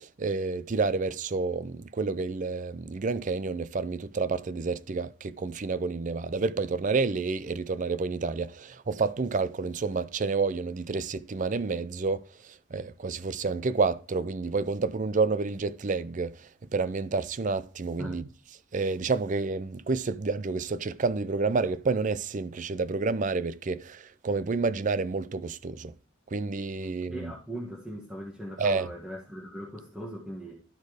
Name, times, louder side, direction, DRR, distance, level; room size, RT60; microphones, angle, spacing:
voice 1, 0.0-12.2 12.7-16.4 16.7-18.3 18.7-25.9 26.3-27.3 28.6-28.9, right 4 dB, 40° right, 0.4 m, -29 dB
voice 2, 27.1-30.5, equal, 5° right, 1.4 m, -39 dB
12.5 x 4.3 x 4.9 m
head